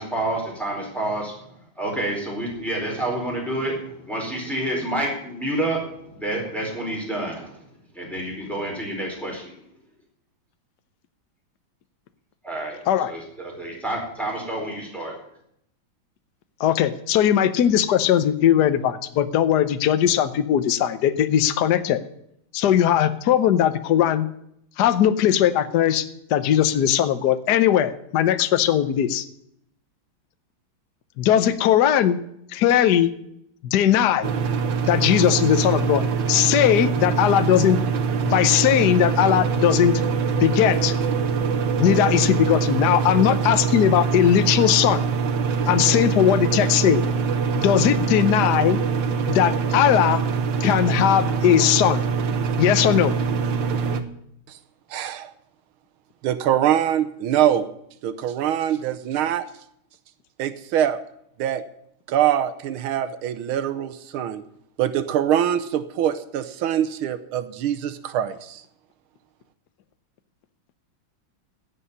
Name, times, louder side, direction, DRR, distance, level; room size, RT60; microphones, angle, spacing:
voice 1, 0.0-7.6 7.9-9.6 12.4-12.8 13.1-15.1, right 1 dB, ahead, -2 dB, 4.5 m, -29 dB
voice 2, 16.6-22.0 22.5-24.3 24.8-26.0 26.3-29.2 31.2-32.2 32.5-33.1 33.6-34.3 34.9-37.8 38.3-40.0 40.3-40.9 41.8-45.0 45.7-47.0 47.5-48.8 49.3-50.2 50.6-52.0 52.6-53.1, left 10 dB, 60° left, 10 dB, 1.2 m, -19 dB
sound 1, 34.2-54.0, right 6 dB, 65° right, 1.7 m, -24 dB
voice 3, 54.9-55.3 56.2-57.6 58.0-59.5 60.4-61.0 61.4-61.6 62.1-64.4 64.8-68.6, right 10 dB, 85° right, 12 dB, 1.7 m, -23 dB
16.5 x 5.7 x 9.5 m, 0.73 s
omnidirectional pair, 2.2 m